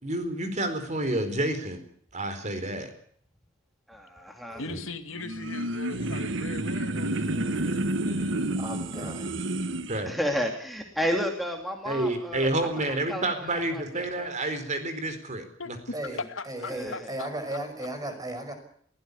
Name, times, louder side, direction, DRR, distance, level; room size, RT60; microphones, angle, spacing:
voice 1, 0.0-1.8 2.1-2.9 9.0-9.1 9.9-10.2 11.9-15.8, right 1 dB, 35° right, 9 dB, 4.4 m, -29 dB
voice 2, 3.9-4.6 10.0-12.5 12.8-14.3 16.7-17.1, equal, ahead, 2 dB, 2.7 m, -32 dB
voice 3, 4.6-8.3 15.6-17.6, left 3 dB, 80° left, 8 dB, 2.3 m, -39 dB
sound 1, 5.1-10.0, right 1 dB, 70° right, 1.6 m, -30 dB
voice 4, 8.6-9.3 15.9-18.5, right 1 dB, 20° right, 7 dB, 5.6 m, -36 dB
22.5 x 17.0 x 8.4 m, 0.62 s
head